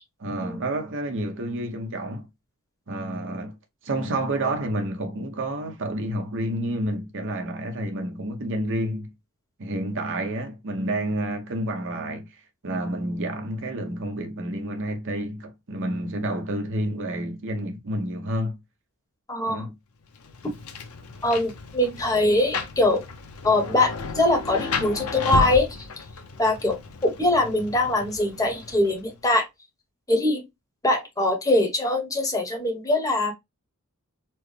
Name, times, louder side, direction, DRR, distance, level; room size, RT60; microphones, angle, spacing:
voice 1, 0.2-2.3 2.9-3.5 3.8-9.1 9.6-12.3 12.6-18.6 19.5-19.7, right 1 dB, 60° right, 0.9 m, -29 dB
voice 2, 19.3-19.6 21.2-23.0 23.4-25.9 26.4-29.5 30.1-30.4 30.8-33.3, left 2 dB, 15° left, 1.0 m, -22 dB
Rain, 20.1-29.2, left 3 dB, 90° left, 0.7 m, -33 dB
4.4 x 2.1 x 3.2 m
head